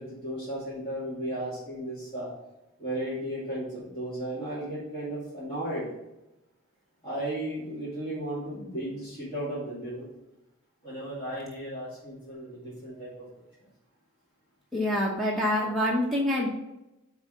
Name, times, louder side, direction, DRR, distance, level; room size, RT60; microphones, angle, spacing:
voice 1, 0.0-2.3 2.8-5.9 7.0-10.1 10.8-13.3, right 1 dB, 25° left, -11 dB, 2.5 m, -35 dB
voice 2, 14.7-16.5, left 1 dB, ahead, -4 dB, 1.0 m, -26 dB
8.4 x 3.6 x 5.6 m, 0.94 s
head